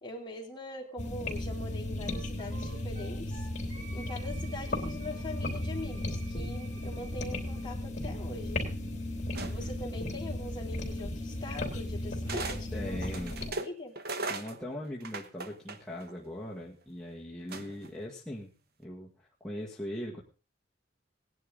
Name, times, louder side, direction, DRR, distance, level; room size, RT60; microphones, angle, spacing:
voice 1, 0.0-3.5 3.9-8.6 9.4-13.1 13.6-13.9, left 2 dB, 25° left, -1 dB, 3.1 m, -42 dB
sound 1, 1.0-13.5, left 1 dB, 45° left, 3.4 m, -35 dB
Wind instrument woodwind instrument, 2.1-7.7, right 3 dB, 40° right, 4.6 m, -52 dB
sound 2, 9.3-9.9 11.0-11.1 12.3-12.6 13.0-16.1 17.5-18.0, right 3 dB, 55° right, 1.1 m, -38 dB
voice 2, 12.7-13.4 14.2-18.5 18.8-19.1 19.4-20.2, left 1 dB, 5° left, -5 dB, 1.6 m, -40 dB
18.0 x 10.5 x 3.8 m, 0.34 s
head